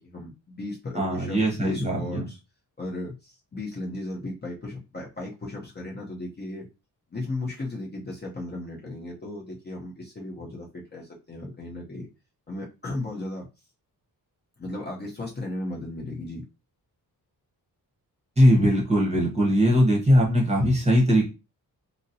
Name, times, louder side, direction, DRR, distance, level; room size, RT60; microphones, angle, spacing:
voice 1, 0.0-2.4 2.8-6.7 7.1-12.1 12.5-13.5 14.6-16.4, left 2 dB, 25° left, -3 dB, 0.7 m, -35 dB
voice 2, 0.9-2.2 18.4-21.2, equal, 15° right, -2 dB, 0.9 m, -20 dB
4.0 x 2.0 x 2.6 m, 0.28 s
wide cardioid pair, 145°, 39 cm